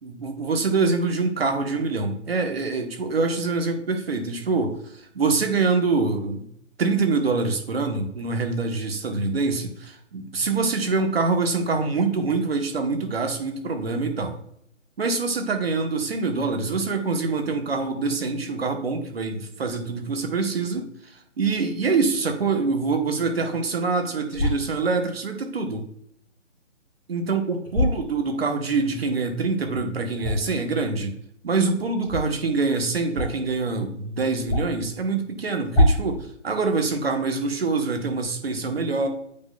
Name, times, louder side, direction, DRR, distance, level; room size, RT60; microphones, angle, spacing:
voice 1, 0.0-6.4 6.8-14.4 15.0-20.9 21.4-25.8 27.1-31.2 31.4-39.1, right 4 dB, 55° right, 4 dB, 1.2 m, -25 dB
sound 1, 24.3-24.6 27.6-28.0 30.1-30.6 32.0-32.2 33.1-33.5 33.8-33.9 34.4-34.9 35.6-36.1, left 1 dB, 15° left, 1.7 m, -23 dB
8.4 x 5.3 x 2.3 m, 0.69 s
figure-of-eight pair, 145°, 37 cm